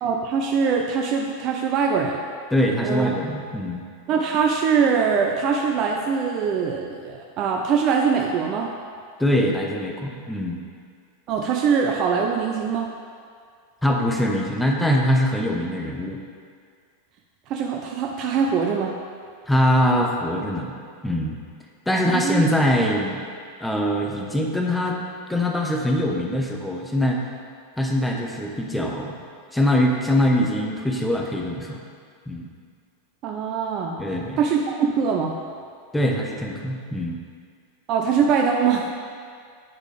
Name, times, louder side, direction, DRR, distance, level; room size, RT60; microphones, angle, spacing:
voice 1, 0.0-2.2 2.8-3.1 4.1-8.7 11.3-12.9 17.5-19.0 21.9-22.5 33.2-34.0 34.4-35.4 37.9-38.9, right 6 dB, 40° right, 1 dB, 0.5 m, -22 dB
voice 2, 2.5-3.8 9.2-10.6 13.8-16.2 19.5-20.7 21.0-21.4 21.9-23.2 23.6-25.0 25.3-27.2 27.8-29.1 29.5-31.8 32.3-32.5 34.0-34.4 35.9-37.2, left 1 dB, 5° left, 0 dB, 0.8 m, -23 dB
8.4 x 4.9 x 3.3 m, 2.2 s
figure-of-eight pair, 90°, 0 cm